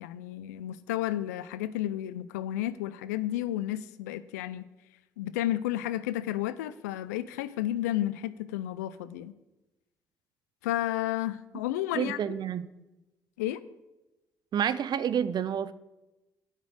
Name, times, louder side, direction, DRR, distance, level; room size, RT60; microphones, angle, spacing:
voice 1, 0.0-4.7 5.2-9.3 10.6-12.4 13.4-13.6, left 13 dB, 90° left, 15 dB, 0.4 m, -32 dB
voice 2, 11.9-12.6 14.5-15.7, right 8 dB, 55° right, 15 dB, 0.7 m, -29 dB
9.4 x 6.6 x 7.7 m, 1.0 s
hypercardioid pair, 50°, 9 cm